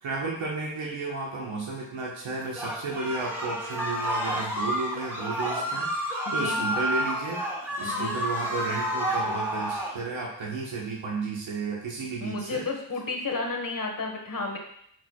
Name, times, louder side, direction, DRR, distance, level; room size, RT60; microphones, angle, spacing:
voice 1, 0.0-7.4 7.8-12.6, right 3 dB, 75° right, -3 dB, 1.4 m, -33 dB
sound 1, 2.5-9.9, equal, 5° right, 2.8 m, -30 dB
voice 2, 6.2-6.6 7.8-8.2 12.2-14.6, left 3 dB, 40° left, 1 dB, 1.6 m, -32 dB
8.9 x 4.8 x 2.4 m, 0.69 s
cardioid pair, 55°, 48 cm